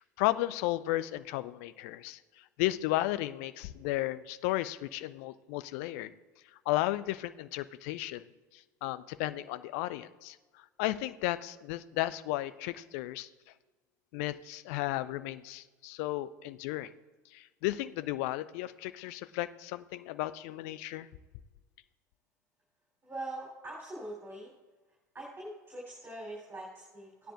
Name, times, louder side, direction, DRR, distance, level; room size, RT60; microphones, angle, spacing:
voice 1, 0.0-2.2 2.6-6.1 6.7-8.2 8.5-10.4 10.8-13.3 14.1-16.9 17.3-21.1, left 16 dB, 55° left, 14 dB, 0.4 m, -34 dB
voice 2, 23.0-24.5 25.1-27.3, right 1 dB, 20° right, -5 dB, 3.6 m, -43 dB
16.0 x 10.0 x 2.5 m, 1.2 s
figure-of-eight pair, 70°, 9 cm